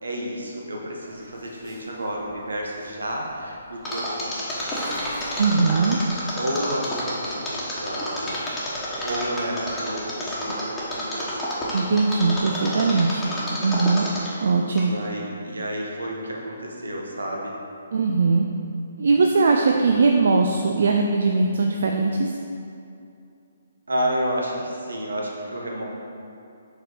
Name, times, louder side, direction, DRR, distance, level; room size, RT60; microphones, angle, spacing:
voice 1, 0.0-5.2 6.3-8.4 9.0-11.5 13.2-13.8 14.9-17.5 19.6-19.8 23.9-25.8, equal, 85° right, -2 dB, 1.1 m, -31 dB
sound 1, 1.0-6.4, equal, 30° right, 1.4 m, -42 dB
Mechanisms, 3.8-14.4 14.8-14.9, left 1 dB, 10° left, 1.2 m, -29 dB
voice 2, 5.4-6.0 11.7-13.3 13.6-14.1 14.4-14.9 17.9-18.5 19.0-22.3, right 4 dB, 65° right, 2 dB, 0.4 m, -20 dB
5.1 x 4.2 x 4.6 m, 2.5 s
figure-of-eight pair, 140°, 0 cm